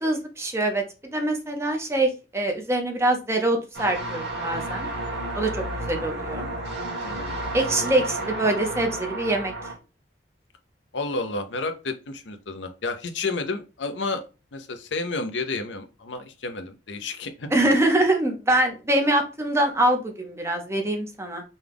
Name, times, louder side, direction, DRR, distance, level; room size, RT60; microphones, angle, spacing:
voice 1, 0.0-4.9 5.3-6.5 7.5-9.5 17.5-21.4, right 1 dB, 15° right, 3 dB, 0.8 m, -24 dB
sound 1, 3.7-9.7, right 1 dB, 90° right, 1.7 m, -31 dB
voice 2, 7.0-7.3 10.9-14.2 14.5-17.5, left 3 dB, 90° left, 8 dB, 0.7 m, -31 dB
5.4 x 2.3 x 3.5 m, 0.31 s
head